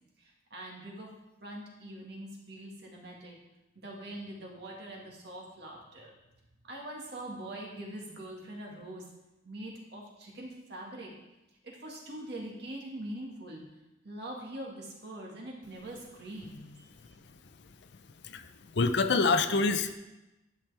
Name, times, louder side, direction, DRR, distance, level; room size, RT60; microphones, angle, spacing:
voice 1, 0.2-1.1 1.4-3.4 3.8-6.1 6.7-9.0 9.4-11.1 11.6-13.6 14.0-17.1, right 1 dB, 60° right, -2 dB, 1.9 m, -43 dB
voice 2, 18.7-19.9, left 3 dB, 65° left, 9 dB, 0.5 m, -26 dB
10.5 x 5.9 x 3.4 m, 0.98 s
head